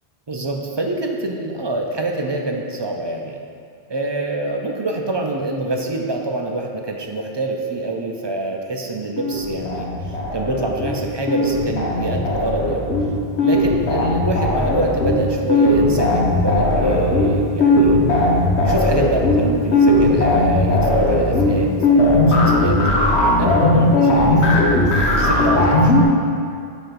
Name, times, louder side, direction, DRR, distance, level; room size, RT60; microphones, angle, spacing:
voice 1, 0.3-3.4 3.9-12.9 13.4-18.0 18.6-22.8 23.4-26.1, right 2 dB, 35° right, 1 dB, 0.4 m, -26 dB
sound 1, 9.2-11.0 11.3-26.0, left 1 dB, 90° left, 1.3 m, -17 dB
5.5 x 5.1 x 5.9 m, 2.4 s
omnidirectional pair, 1.1 m